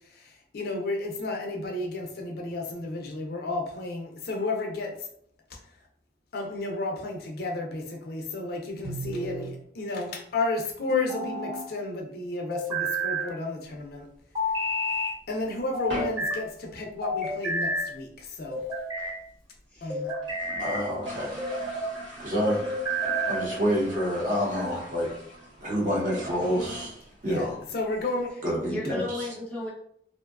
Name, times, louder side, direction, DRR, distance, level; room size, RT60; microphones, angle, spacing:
voice 1, 0.1-5.1 6.3-14.1 14.6-18.6 19.8-20.1 27.2-28.3, left 2 dB, 55° left, 1 dB, 0.4 m, -32 dB
sound 1, 8.8-9.5 10.9-11.7 12.5-13.3 14.4-15.1 15.7-16.4 17.0-17.9 18.5-19.2 19.9-20.9 21.4-21.9 22.7-23.5, equal, 20° right, 0.9 m, -30 dB
sound 2, 13.7-14.7 15.1-15.2 15.5-15.6 15.9-16.3 16.6-16.7 17.0-17.1 17.3-17.8 18.2-18.3 18.4-18.5 18.8-18.9 19.4-19.5 19.8-19.9 20.1-28.3, right 1 dB, 85° right, 1.2 m, -42 dB
voice 2, 20.6-21.3 22.2-22.6 23.3-25.1 25.6-26.9 27.2-27.5 28.4-29.0, equal, 45° right, -3 dB, 0.8 m, -27 dB
voice 3, 28.6-29.7, left 2 dB, 5° left, -5 dB, 0.7 m, -35 dB
2.6 x 2.2 x 2.3 m, 0.67 s
head